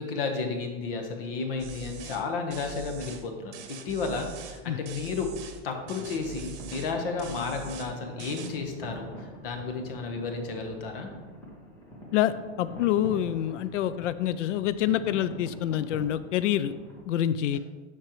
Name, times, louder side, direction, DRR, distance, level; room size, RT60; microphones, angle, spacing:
voice 1, 0.0-5.3 5.6-11.1 17.5-17.6, left 4 dB, 50° left, 4 dB, 1.1 m, -32 dB
sound 1, 1.6-2.2 2.5-3.2 3.5-4.6 4.9-5.6 5.9-6.9 7.2-7.9 8.2-8.5, right 8 dB, 70° right, 1.1 m, -43 dB
sound 2, 5.9-17.0, equal, 5° left, 0.4 m, -45 dB
voice 2, 12.1-16.7 17.1-17.6, left 11 dB, 80° left, 15 dB, 0.5 m, -26 dB
11.5 x 4.4 x 3.0 m, 1.3 s
supercardioid pair, 170°, 36 cm